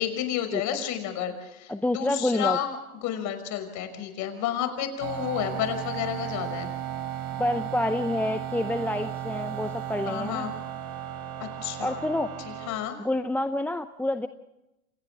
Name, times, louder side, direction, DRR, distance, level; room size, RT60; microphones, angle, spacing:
voice 1, 0.0-2.8 3.0-6.7 10.0-10.5 11.4-12.0 12.7-13.0, left 10 dB, 40° left, 8 dB, 5.7 m, -31 dB
voice 2, 1.7-2.6 7.4-10.5 11.8-12.3 13.0-14.3, left 1 dB, 5° left, 10 dB, 0.7 m, -28 dB
sound 1, 5.0-12.7, right 11 dB, 50° right, 4.8 m, -35 dB
29.5 x 27.5 x 3.5 m, 0.91 s
hypercardioid pair, 105°, 44 cm